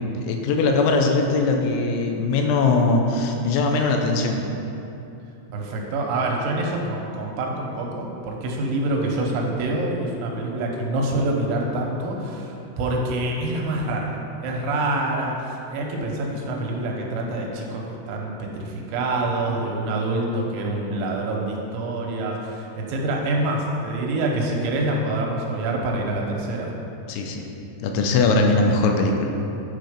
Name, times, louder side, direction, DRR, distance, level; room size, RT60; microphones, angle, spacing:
voice 1, 0.2-4.4 27.1-27.5 27.8-29.3, left 3 dB, 80° left, 3 dB, 2.9 m, -20 dB
voice 2, 5.5-26.7, right 2 dB, 80° right, -1 dB, 3.3 m, -26 dB
9.1 x 4.4 x 5.0 m, 2.8 s
omnidirectional pair, 5.4 m